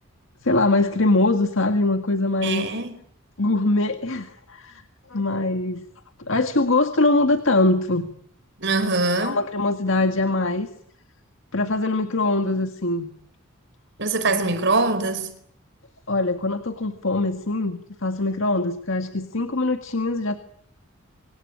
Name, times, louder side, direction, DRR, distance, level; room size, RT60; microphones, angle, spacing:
voice 1, 0.4-2.8 3.4-4.8 5.1-5.8 6.2-8.1 9.2-10.7 11.5-13.1 16.1-20.4, left 2 dB, 65° left, 1.8 m, -22 dB
voice 2, 2.4-2.9 8.6-9.4 14.0-15.3, right 3 dB, 55° right, 4.6 m, -23 dB
26.0 x 26.0 x 8.7 m
head